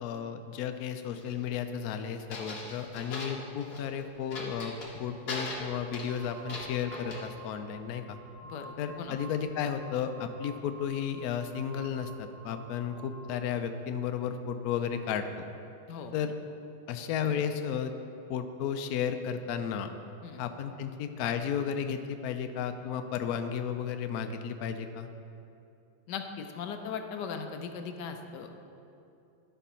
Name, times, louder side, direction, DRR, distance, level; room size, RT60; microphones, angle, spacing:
voice 1, 0.0-8.2 8.8-15.3 16.1-16.3 16.9-17.9 18.3-19.9 20.4-25.1, left 8 dB, 90° left, 8 dB, 0.8 m, -33 dB
sound 1, 1.1-1.5 2.3-3.9 4.3-5.0 5.3-7.2, left 3 dB, 50° left, 1.5 m, -40 dB
sound 2, 5.7-13.4, right 3 dB, 65° right, 1.4 m, -51 dB
voice 2, 8.4-9.2 15.9-16.1 20.2-20.4 26.1-28.6, left 6 dB, 70° left, 5 dB, 1.2 m, -39 dB
11.5 x 4.6 x 5.6 m, 2.7 s
omnidirectional pair, 2.1 m